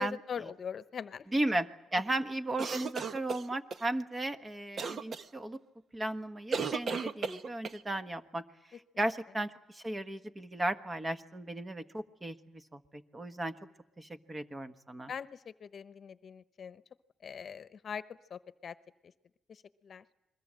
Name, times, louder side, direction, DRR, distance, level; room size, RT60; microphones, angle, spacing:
voice 1, 0.0-1.3 15.1-16.8 17.2-18.0 18.3-18.7 19.5-20.0, left 7 dB, 50° left, 13 dB, 1.0 m, -42 dB
voice 2, 1.3-5.6 5.9-8.4 9.0-13.5 14.0-15.1, right 1 dB, 20° right, 9 dB, 1.5 m, -35 dB
sound 1, 2.6-3.8 4.8-5.2 6.5-7.8, right 5 dB, 50° right, 1.2 m, -35 dB
29.0 x 22.0 x 7.7 m, 0.90 s
cardioid pair, 90°, 0 cm